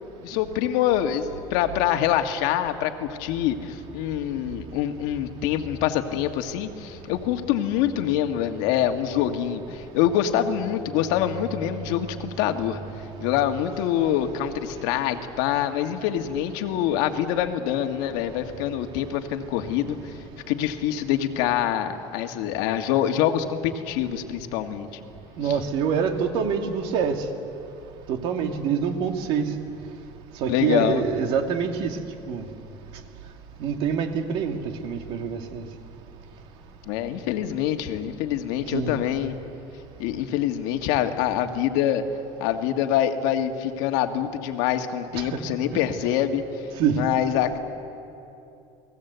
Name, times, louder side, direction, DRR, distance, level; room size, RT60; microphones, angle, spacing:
voice 1, 0.2-12.8 13.2-20.0 20.5-24.9 25.4-25.6 30.5-31.0 36.9-39.4 40.0-42.0 42.4-46.4 47.0-47.6, left 11 dB, 80° left, 6 dB, 1.8 m, -25 dB
voice 2, 25.4-27.2 28.1-29.5 30.4-31.9 32.3-32.4 33.6-34.6 34.8-35.6 38.7-39.0 45.1-45.3 46.8-47.0, right 7 dB, 55° right, 5 dB, 2.2 m, -25 dB
29.5 x 19.5 x 8.2 m, 2.8 s
cardioid pair, 170°, 11 cm